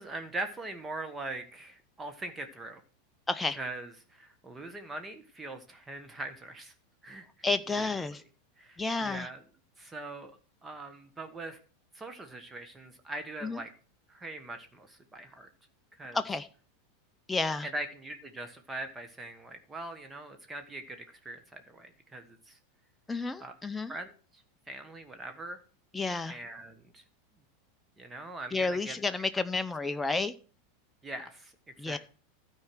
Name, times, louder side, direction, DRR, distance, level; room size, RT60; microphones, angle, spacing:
voice 1, 0.0-2.8 3.6-6.7 7.0-7.3 7.8-7.9 8.6-9.4 9.8-10.3 10.6-11.6 11.9-13.7 14.1-15.5 16.0-16.2 17.7-22.6 23.4-23.5 23.9-24.4 24.7-25.6 26.3-27.0 28.0-28.9 31.0-31.5 31.9-32.0, right 2 dB, 15° right, 7 dB, 1.2 m, -41 dB
voice 2, 3.3-3.6 7.4-8.2 8.8-9.3 13.4-13.6 16.1-16.5 17.3-17.7 23.1-23.9 25.9-26.4 28.5-30.3 31.8-32.0, left 3 dB, 10° left, 10 dB, 0.5 m, -31 dB
13.0 x 4.6 x 6.1 m, 0.40 s
figure-of-eight pair, 90°, 0 cm